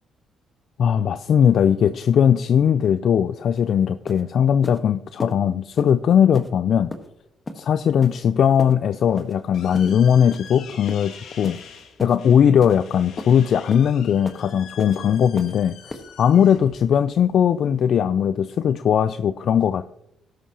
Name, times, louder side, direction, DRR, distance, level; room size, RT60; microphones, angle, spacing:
voice 1, 0.8-6.9 7.6-11.6 12.0-15.7 16.2-19.8, left 8 dB, 65° left, 13 dB, 0.4 m, -19 dB
sound 1, 3.6-3.7 4.1-4.2 4.6-4.8 5.2-5.3 5.8-5.9 6.3-6.5 6.9-7.1 7.5-7.6 8.0-8.2 8.6-8.7 9.2-9.3 9.7-9.9 10.3-10.5 10.9-11.1 11.4-11.6 12.0-12.2 12.6-12.8 13.2-13.3 13.7-13.9 14.3-14.4 14.8-15.0 15.4-15.5 15.9-16.0, left 2 dB, 25° left, 1.4 m, -34 dB
sound 2, 8.9-18.0, left 7 dB, 80° left, 1.5 m, -45 dB
13.0 x 11.0 x 2.9 m, 0.80 s
cardioid pair, 90°, 0 cm